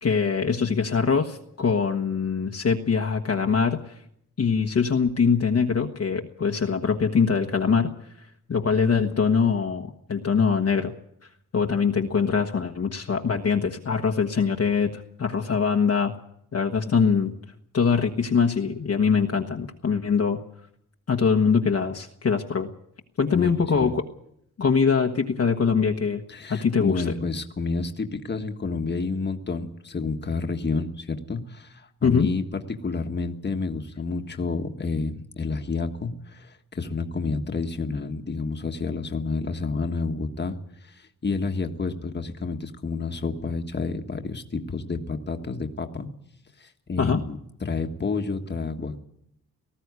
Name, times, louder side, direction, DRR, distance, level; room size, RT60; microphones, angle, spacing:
voice 1, 0.0-3.9 4.4-7.9 8.5-10.9 11.5-16.1 16.5-17.3 17.7-20.4 21.1-22.7 23.2-24.0 24.6-26.2 26.5-27.0 32.0-32.3 47.0-47.2, left 5 dB, 50° left, 2 dB, 1.3 m, -23 dB
voice 2, 23.3-23.9 26.3-46.1 46.6-49.0, left 4 dB, 30° left, 5 dB, 1.6 m, -30 dB
19.0 x 14.5 x 9.6 m, 0.74 s
wide cardioid pair, 145°, 33 cm